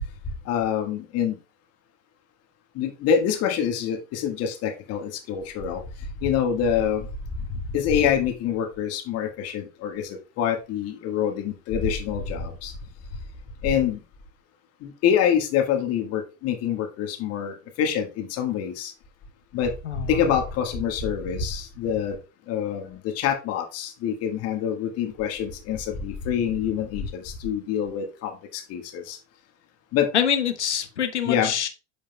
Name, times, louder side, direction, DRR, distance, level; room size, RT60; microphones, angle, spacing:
voice 1, 0.5-1.3 2.8-5.8 6.2-7.0 7.7-10.0 10.4-12.7 13.6-14.0 14.8-18.9 19.5-19.7 20.1-22.1 22.5-27.1 27.4-29.2 29.9-30.1 31.3-31.5, left 8 dB, 45° left, 1.6 m, -26 dB
voice 2, 19.8-20.4 30.1-31.7, left 8 dB, 80° left, 1.0 m, -25 dB
9.3 x 5.1 x 2.2 m
figure-of-eight pair, 80°, 34 cm